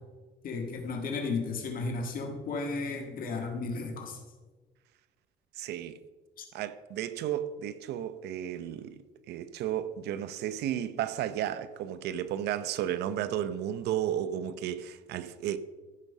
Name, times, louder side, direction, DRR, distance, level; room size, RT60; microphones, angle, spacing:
voice 1, 0.4-4.2 6.4-6.5, left 3 dB, 55° left, 1.7 m, -34 dB
voice 2, 5.6-6.0 6.5-15.6, right 11 dB, 75° right, 0.7 m, -33 dB
15.0 x 5.4 x 5.5 m
cardioid pair, 110°, 17 cm